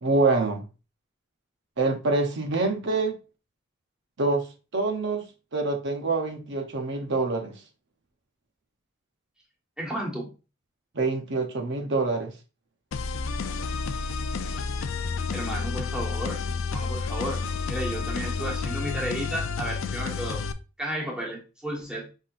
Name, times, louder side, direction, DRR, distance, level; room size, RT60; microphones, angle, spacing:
voice 1, 0.0-0.6 1.8-3.1 4.2-4.5 4.7-7.6 10.9-12.3, right 3 dB, 60° right, 0.8 m, -26 dB
voice 2, 9.8-10.3 15.3-16.4 16.7-17.4 17.7-20.4 20.8-22.1, right 1 dB, 5° right, 1.4 m, -33 dB
sound 1, 12.9-20.5, left 4 dB, 70° left, 0.4 m, -30 dB
5.6 x 3.7 x 2.5 m
head